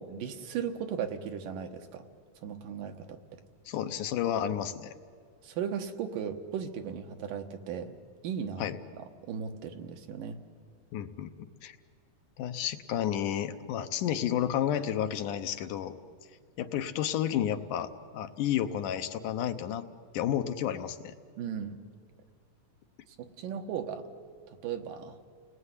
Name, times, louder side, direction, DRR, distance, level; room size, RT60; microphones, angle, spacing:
voice 1, 0.0-2.1 2.4-3.4 5.4-8.0 8.2-8.7 8.9-10.4 21.4-21.8 23.2-24.1 24.5-25.1, right 7 dB, 80° right, 5 dB, 3.0 m, -37 dB
voice 2, 3.7-5.0 8.6-8.8 10.9-11.3 11.6-11.8 12.4-16.0 16.6-19.9 20.1-21.1, left 10 dB, 75° left, 8 dB, 2.4 m, -31 dB
29.5 x 19.5 x 9.8 m, 2.1 s
omnidirectional pair, 3.8 m